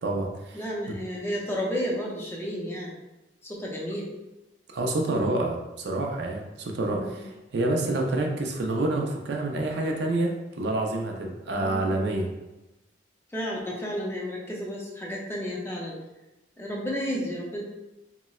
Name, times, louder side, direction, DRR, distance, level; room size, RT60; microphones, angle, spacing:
voice 1, 0.0-0.6 4.7-12.3, right 2 dB, 65° right, 1 dB, 0.4 m, -28 dB
voice 2, 0.5-3.0 3.4-4.1 7.0-7.2 11.4-11.9 13.3-16.0 16.6-17.6, equal, 15° left, -3 dB, 0.4 m, -32 dB
3.7 x 2.0 x 2.3 m, 0.99 s
head